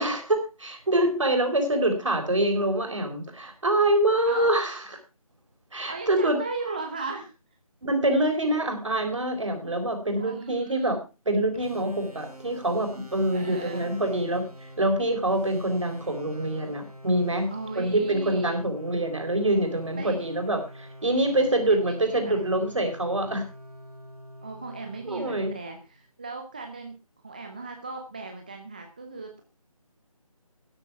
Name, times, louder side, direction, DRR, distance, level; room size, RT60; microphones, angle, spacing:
voice 1, 0.0-4.8 5.7-6.4 7.8-11.0 11.3-17.5 17.8-23.5 25.1-25.5, right 1 dB, 55° right, 5 dB, 4.2 m, -25 dB
voice 2, 5.9-7.3 10.1-11.0 13.3-13.9 17.5-18.7 20.0-20.3 21.7-22.4 24.4-27.0 27.2-29.4, right 3 dB, 15° right, 4 dB, 0.7 m, -37 dB
sound 1, 11.5-26.1, equal, 90° right, 4.1 m, -46 dB
13.5 x 9.8 x 4.6 m, 0.31 s
figure-of-eight pair, 160°, 19 cm